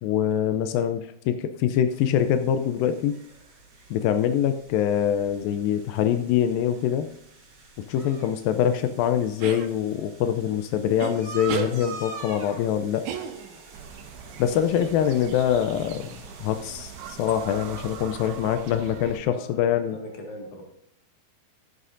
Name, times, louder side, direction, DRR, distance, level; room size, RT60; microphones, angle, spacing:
voice 1, 0.0-3.2 3.9-7.1 7.9-13.0 14.4-16.1 16.4-20.0, left 9 dB, 85° left, 8 dB, 2.0 m, -24 dB
sound 1, 1.9-18.9, right 4 dB, 35° right, 3.2 m, -46 dB
sound 2, 9.4-9.7 11.0-11.1 11.5-11.7 13.0-13.7, right 9 dB, 75° right, 2.7 m, -31 dB
sound 3, 13.7-19.2, right 7 dB, 90° right, 2.9 m, -41 dB
voice 2, 19.2-20.6, left 1 dB, 55° left, 2 dB, 2.9 m, -40 dB
13.5 x 9.7 x 2.6 m, 0.74 s
omnidirectional pair, 4.8 m